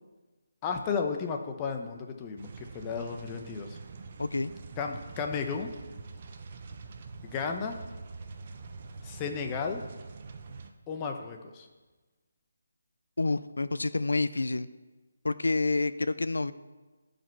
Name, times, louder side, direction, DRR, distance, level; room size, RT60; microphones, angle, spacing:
voice 1, 0.6-2.5 2.7-3.8 4.8-5.7 7.2-7.8 9.0-9.8 10.9-11.7, left 5 dB, 20° left, 4 dB, 0.9 m, -33 dB
sound 1, 2.4-10.7, right 4 dB, 40° right, 0.8 m, -44 dB
voice 2, 4.2-4.5 13.2-14.7 15.2-16.5, left 3 dB, 90° left, 15 dB, 0.5 m, -28 dB
15.0 x 5.3 x 4.6 m, 1.2 s
figure-of-eight pair, 165°, 0 cm